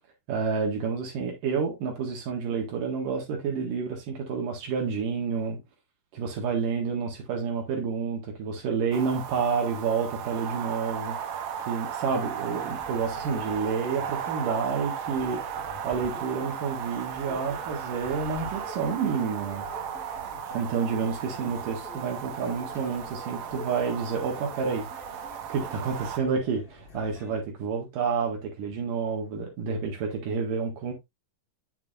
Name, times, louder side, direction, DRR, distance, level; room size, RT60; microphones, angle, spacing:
voice 1, 0.3-5.6 6.1-19.7 20.5-24.9 25.5-30.9, right 5 dB, 85° right, 3.4 m, -29 dB
sound 1, 8.9-26.2, right 8 dB, 70° right, 2.1 m, -36 dB
sound 2, 12.1-27.4, left 3 dB, 50° left, 0.6 m, -47 dB
8.6 x 7.0 x 2.5 m
omnidirectional pair, 3.7 m